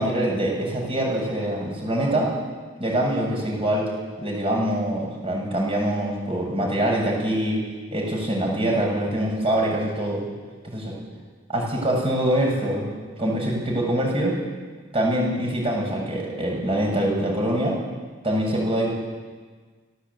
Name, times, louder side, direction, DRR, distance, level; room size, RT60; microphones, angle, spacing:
voice 1, 0.0-2.3 2.8-3.9 4.2-7.6 7.9-10.2 10.6-10.9 11.5-12.9 13.2-14.4 14.9-17.8 18.2-18.9, right 1 dB, 30° right, -1 dB, 6.9 m, -24 dB
24.5 x 17.0 x 8.6 m, 1.4 s
head